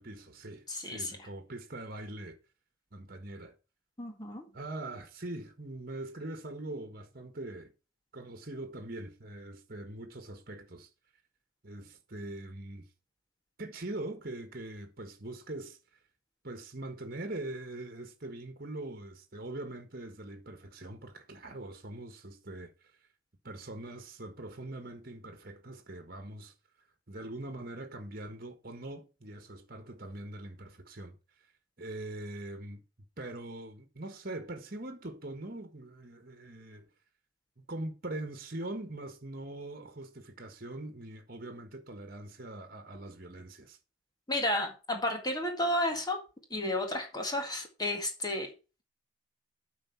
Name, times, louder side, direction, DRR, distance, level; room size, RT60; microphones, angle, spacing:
voice 1, 0.0-2.4 2.9-3.5 4.5-7.7 8.1-10.9 11.6-12.9 13.6-15.8 16.4-22.7 23.4-26.5 27.1-31.2 31.8-32.8 33.2-36.9 37.6-43.8, right 2 dB, 45° right, 1.5 m, -42 dB
voice 2, 0.7-1.2 4.0-4.5 44.3-46.2 46.5-48.5, left 1 dB, 20° left, 1.8 m, -32 dB
8.9 x 5.3 x 5.8 m
head